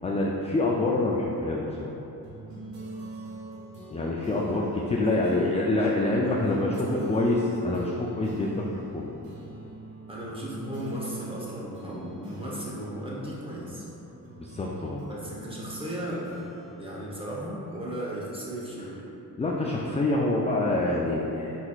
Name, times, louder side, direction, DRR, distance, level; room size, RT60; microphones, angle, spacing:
voice 1, 0.0-1.9 3.9-8.7 8.9-9.1 14.4-15.0 19.4-21.6, left 2 dB, 20° left, -3 dB, 0.3 m, -26 dB
sound 1, 2.2-18.1, right 2 dB, 75° right, 1.0 m, -44 dB
voice 2, 5.0-5.4 6.2-7.1 10.1-13.9 15.1-16.4 16.8-19.0, equal, 15° right, -6 dB, 0.9 m, -36 dB
4.5 x 4.0 x 2.3 m, 3.0 s
cardioid pair, 80°, 36 cm